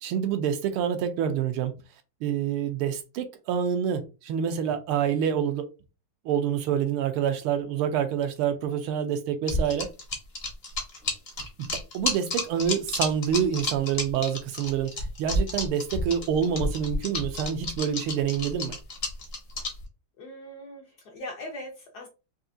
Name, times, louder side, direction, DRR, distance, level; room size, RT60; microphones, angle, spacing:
voice 1, 0.0-1.7 2.2-5.6 6.2-9.9 11.6-11.7 11.9-14.9 15.2-18.8, right 8 dB, 80° right, 1.6 m, -27 dB
sound 1, 9.5-19.8, left 2 dB, 45° left, 0.8 m, -30 dB
voice 2, 20.2-22.1, left 1 dB, 65° left, 1.0 m, -40 dB
4.7 x 2.8 x 2.6 m
omnidirectional pair, 2.4 m